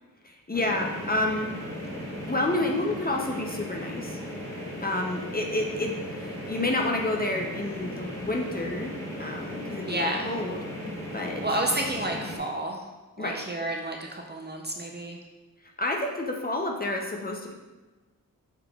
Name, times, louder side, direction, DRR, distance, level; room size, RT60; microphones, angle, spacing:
voice 1, 0.2-1.5 2.3-4.2 4.8-10.6 11.1-11.4 13.2-13.4 15.8-17.5, left 2 dB, 25° left, 1 dB, 0.5 m, -29 dB
sound 1, 0.5-12.4, equal, 10° left, 1.1 m, -37 dB
voice 2, 9.8-10.3 11.4-12.8 13.2-15.2, right 1 dB, 30° right, 1 dB, 0.4 m, -30 dB
5.7 x 3.6 x 2.3 m, 1.2 s
wide cardioid pair, 90°, 36 cm